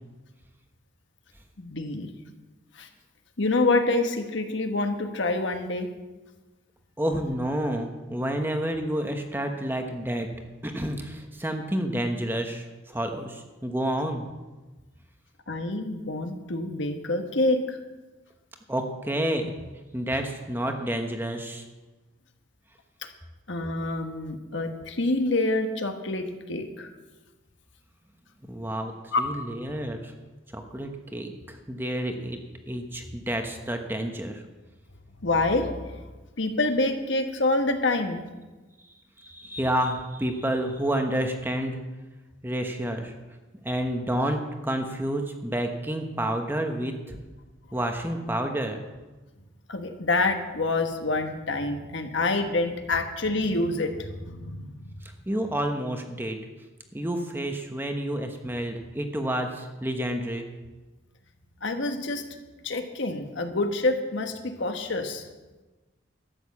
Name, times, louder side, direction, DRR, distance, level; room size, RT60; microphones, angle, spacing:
voice 1, 1.6-2.1 2.7-2.9 3.4-5.9 15.5-17.8 23.5-26.9 29.1-29.2 35.2-36.0 36.4-38.2 49.7-54.9 61.6-62.3 62.6-65.3, left 2 dB, 65° left, 6 dB, 1.3 m, -27 dB
voice 2, 7.0-10.3 10.6-14.3 18.7-19.5 19.9-21.7 28.5-30.1 30.5-32.4 32.7-34.4 38.8-41.8 42.4-43.1 43.6-47.2 47.7-48.8 55.0-56.4 56.9-60.5, right 1 dB, 10° right, 4 dB, 1.0 m, -29 dB
13.0 x 9.0 x 7.4 m, 1.2 s
head